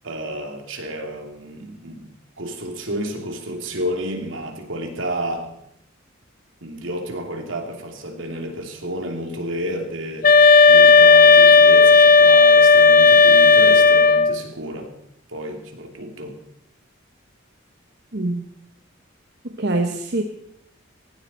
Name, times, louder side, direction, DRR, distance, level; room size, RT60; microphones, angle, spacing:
voice 1, 0.0-5.5 6.6-10.3 10.7-14.9 15.3-16.4, right 1 dB, 70° right, 3 dB, 2.8 m, -31 dB
sound 1, 10.2-14.4, left 4 dB, 45° left, 0.5 m, -11 dB
voice 2, 18.1-18.4 19.4-20.2, right 2 dB, 55° right, 4 dB, 1.1 m, -24 dB
18.5 x 16.5 x 4.3 m, 0.75 s
head